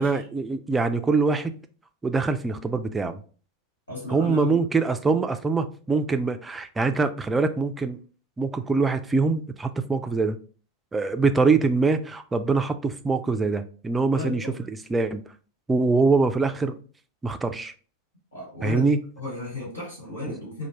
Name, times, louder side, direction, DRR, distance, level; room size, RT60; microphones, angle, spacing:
voice 1, 0.0-1.5 2.0-3.2 4.1-8.0 8.4-10.4 10.9-14.5 14.9-15.2 15.7-16.8 17.2-17.7 18.6-19.0, right 4 dB, 10° right, 9 dB, 0.3 m, -23 dB
voice 2, 3.9-4.6 14.0-14.6 18.3-18.9 19.2-20.7, left 2 dB, 75° left, -5 dB, 1.8 m, -35 dB
4.3 x 2.2 x 3.0 m, 0.39 s
figure-of-eight pair, 90°, 0 cm